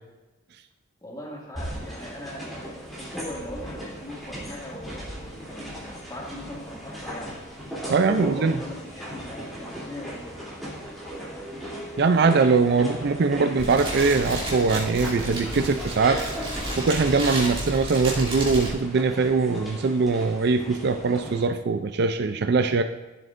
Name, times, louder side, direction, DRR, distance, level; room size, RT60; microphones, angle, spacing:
voice 1, 1.0-7.4 7.8-10.4, left 1 dB, 20° left, -3 dB, 2.2 m, -39 dB
sound 1, 1.6-21.5, equal, ahead, 3.1 m, -38 dB
voice 2, 7.9-8.5 12.0-16.2 16.8-22.8, right 4 dB, 60° right, 8 dB, 0.4 m, -22 dB
Fire, 13.6-18.7, right 1 dB, 30° right, 2.8 m, -32 dB
15.0 x 7.8 x 2.6 m, 1.1 s
head